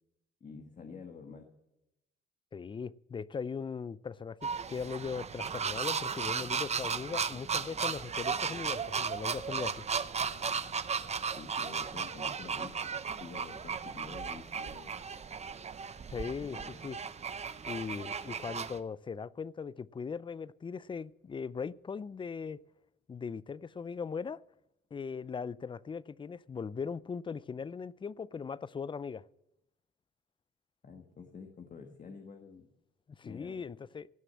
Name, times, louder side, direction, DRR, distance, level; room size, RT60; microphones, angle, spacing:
voice 1, 0.4-1.5 11.4-14.9 16.4-16.8 30.8-32.7 33.2-33.6, left 5 dB, 40° left, 1.5 m, -48 dB
voice 2, 2.5-9.9 16.1-17.0 17.6-22.6 23.1-24.4 24.9-29.2 33.2-34.1, left 5 dB, 25° left, 0.4 m, -39 dB
sound 1, 4.4-18.8, right 6 dB, 35° right, 0.7 m, -35 dB
17.0 x 6.6 x 7.5 m
cardioid pair, 90°, 20 cm